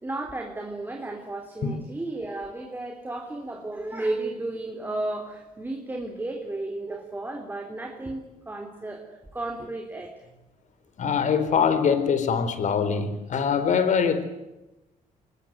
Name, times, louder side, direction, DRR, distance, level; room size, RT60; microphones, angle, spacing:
voice 1, 0.0-9.1 9.3-10.1, right 2 dB, 15° right, 2 dB, 3.7 m, -33 dB
voice 2, 11.0-14.2, left 6 dB, 60° left, 12 dB, 4.1 m, -23 dB
24.5 x 21.0 x 9.4 m, 0.98 s
cardioid pair, 110°, 15 cm